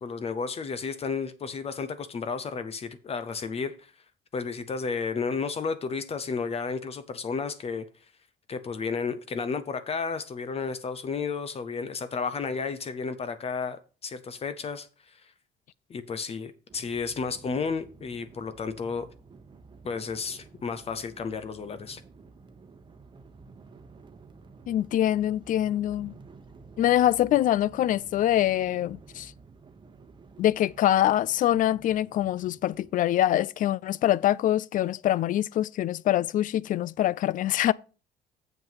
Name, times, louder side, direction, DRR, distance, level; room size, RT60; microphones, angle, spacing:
voice 1, 0.0-3.9 4.3-7.8 8.5-15.3 15.9-19.1 19.8-22.0, left 5 dB, 35° left, 0.8 m, -32 dB
sound 1, 16.7-32.9, right 4 dB, 30° right, 1.0 m, -51 dB
voice 2, 24.7-26.1 26.8-29.3 30.4-37.7, left 12 dB, 50° left, 0.4 m, -24 dB
7.4 x 5.4 x 5.7 m
cardioid pair, 110°, 17 cm